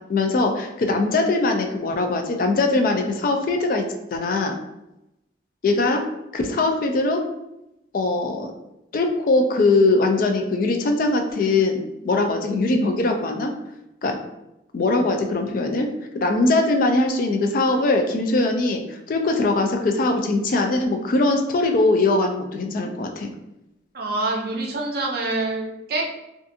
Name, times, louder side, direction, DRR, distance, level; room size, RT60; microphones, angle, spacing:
voice 1, 0.1-3.8 4.1-4.6 5.6-6.0 6.3-7.2 7.9-8.5 8.9-13.5 14.0-14.2 14.7-15.9 16.1-23.3, left 2 dB, 45° left, 4 dB, 0.3 m, -21 dB
voice 2, 23.9-26.0, right 2 dB, 55° right, 0 dB, 0.5 m, -26 dB
2.5 x 2.4 x 2.5 m, 0.89 s
head